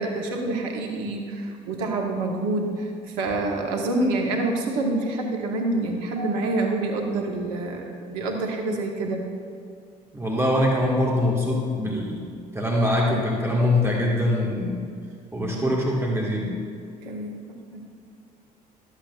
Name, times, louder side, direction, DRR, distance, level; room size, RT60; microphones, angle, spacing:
voice 1, 0.0-9.2 15.5-15.7 17.0-17.8, right 2 dB, 70° right, 2 dB, 1.2 m, -27 dB
voice 2, 10.1-12.2 12.5-14.8 15.3-16.6, left 1 dB, 10° right, -3 dB, 1.7 m, -23 dB
12.5 x 8.0 x 2.4 m, 2.3 s
figure-of-eight pair, 55°, 21 cm